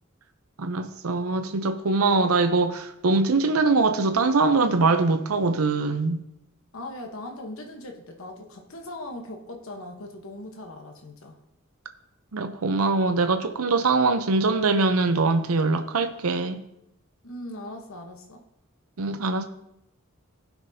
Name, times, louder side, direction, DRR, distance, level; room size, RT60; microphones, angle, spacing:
voice 1, 0.6-6.2 12.3-16.6 19.0-19.4, right 3 dB, 90° right, 0.7 m, -23 dB
voice 2, 6.7-11.4 17.2-18.4, left 1 dB, 70° left, 1.1 m, -39 dB
16.5 x 5.9 x 2.8 m
head